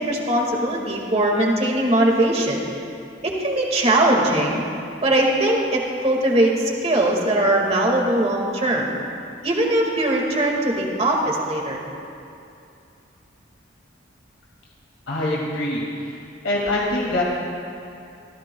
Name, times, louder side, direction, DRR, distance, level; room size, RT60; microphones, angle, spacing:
voice 1, 0.0-2.6 3.2-4.6 5.0-8.9 9.4-11.8, right 1 dB, 30° right, -1 dB, 1.9 m, -20 dB
voice 2, 15.1-16.2 16.4-17.2, left 1 dB, 80° left, -4 dB, 2.2 m, -24 dB
26.5 x 15.0 x 2.3 m, 2.6 s
head